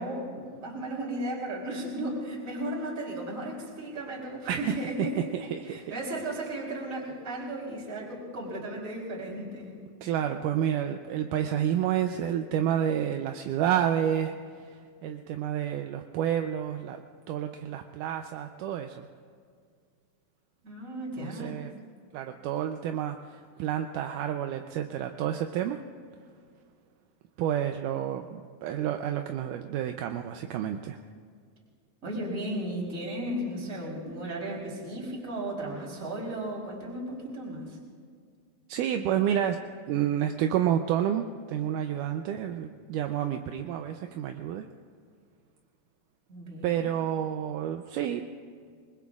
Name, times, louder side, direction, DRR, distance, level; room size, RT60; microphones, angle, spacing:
voice 1, 0.0-5.3 5.7-9.8 20.6-21.6 32.0-37.8 46.3-46.9, right 1 dB, 20° right, -3 dB, 3.7 m, -35 dB
voice 2, 5.3-5.9 10.0-17.0 17.3-19.1 21.2-21.7 22.1-25.8 27.4-31.0 38.7-39.6 39.9-44.7 46.6-48.3, right 10 dB, 80° right, 5 dB, 2.0 m, -29 dB
28.0 x 20.5 x 2.4 m, 2.1 s
omnidirectional pair, 4.1 m